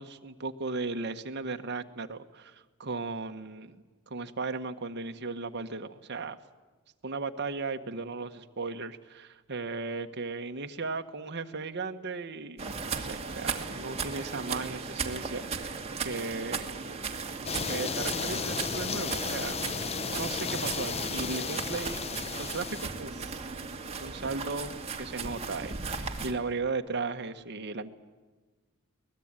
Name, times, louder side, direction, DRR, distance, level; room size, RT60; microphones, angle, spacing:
voice 1, 0.0-3.8 4.1-6.4 7.0-16.6 17.6-19.6 20.1-22.0 22.4-23.4 24.0-27.9, right 3 dB, 55° right, 7 dB, 1.4 m, -36 dB
sound 1, 12.6-26.3, right 5 dB, 30° right, 2.3 m, -36 dB
sound 2, 17.5-22.9, left 5 dB, 30° left, 0.7 m, -34 dB
23.5 x 20.0 x 8.9 m, 1.3 s
head